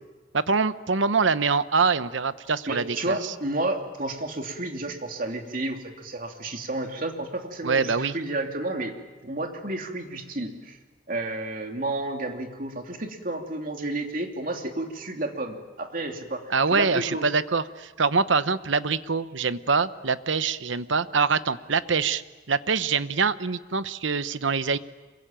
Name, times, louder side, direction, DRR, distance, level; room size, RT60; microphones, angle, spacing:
voice 1, 0.3-3.3 7.6-8.1 16.5-22.2 22.5-24.8, right 5 dB, 80° right, 13 dB, 0.9 m, -24 dB
voice 2, 2.7-8.9 9.2-10.8 11.1-17.3, right 2 dB, 45° right, 3 dB, 2.9 m, -31 dB
26.5 x 23.0 x 9.0 m, 1.2 s
head